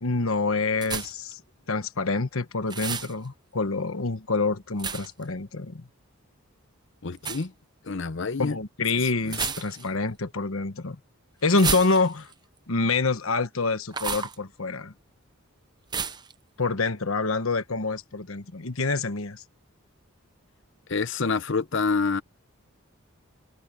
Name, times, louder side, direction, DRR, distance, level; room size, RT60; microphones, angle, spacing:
voice 1, 0.0-1.4 1.7-5.9 8.4-11.0 11.4-12.3 12.7-14.9 16.6-19.4, left 3 dB, 75° left, 1.2 m, -26 dB
sound 1, 0.8-1.3 2.7-3.1 4.8-5.2 7.2-7.5 9.3-10.0 11.5-12.3 13.9-14.4 15.9-16.3, right 6 dB, 20° right, 0.8 m, -31 dB
voice 2, 7.0-7.5 7.8-8.6 9.3-9.4 9.8-9.9 20.9-22.2, left 4 dB, 60° left, 0.8 m, -27 dB
head